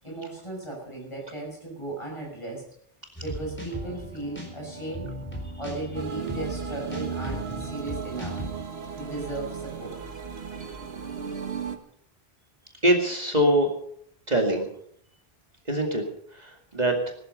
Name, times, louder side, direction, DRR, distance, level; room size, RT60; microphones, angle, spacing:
voice 1, 0.0-2.7 3.2-5.1 5.6-8.4 9.0-10.0, right 2 dB, 30° left, 0 dB, 6.6 m, -36 dB
sound 1, 3.2-8.5, equal, 10° left, 4.4 m, -37 dB
sound 2, 5.9-11.8, right 6 dB, 75° right, 1.8 m, -36 dB
voice 2, 12.8-13.7 14.3-14.7 15.7-16.0 16.3-17.1, right 1 dB, 40° right, 1 dB, 2.4 m, -23 dB
19.0 x 13.0 x 5.5 m, 0.66 s
omnidirectional pair, 1.1 m